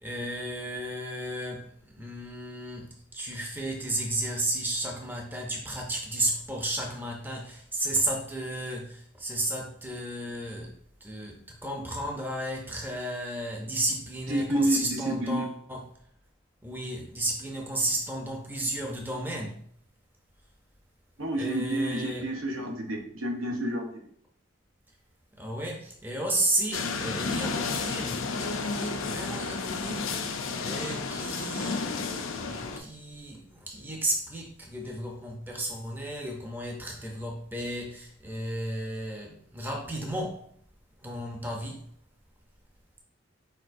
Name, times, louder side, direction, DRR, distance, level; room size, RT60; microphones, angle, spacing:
voice 1, 0.0-10.7 11.0-15.9 16.6-19.6 21.4-22.3 25.4-32.1 32.4-40.5 41.0-41.8, right 1 dB, 10° right, 1 dB, 0.5 m, -33 dB
voice 2, 14.3-15.5 21.2-24.0, right 1 dB, 85° right, 3 dB, 0.9 m, -29 dB
sound 1, 26.7-32.8, left 4 dB, 80° left, 0.5 m, -32 dB
4.5 x 4.2 x 2.6 m, 0.64 s
head